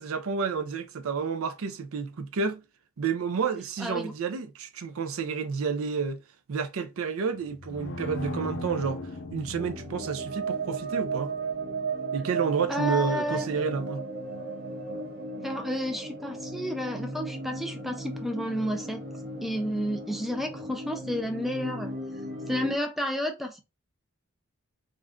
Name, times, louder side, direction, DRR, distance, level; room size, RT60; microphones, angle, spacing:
voice 1, 0.0-2.6 3.0-6.2 6.5-9.0 9.3-11.3 12.1-14.1, right 5 dB, 70° right, 0.4 m, -30 dB
voice 2, 3.8-4.1 12.7-13.5 15.4-19.0 19.4-21.9 22.5-23.6, left 1 dB, ahead, 0.3 m, -31 dB
sound 1, 7.3-10.6, left 2 dB, 55° left, 0.6 m, -38 dB
sound 2, 9.6-22.8, right 3 dB, 45° right, 0.8 m, -35 dB
2.5 x 2.2 x 3.5 m
head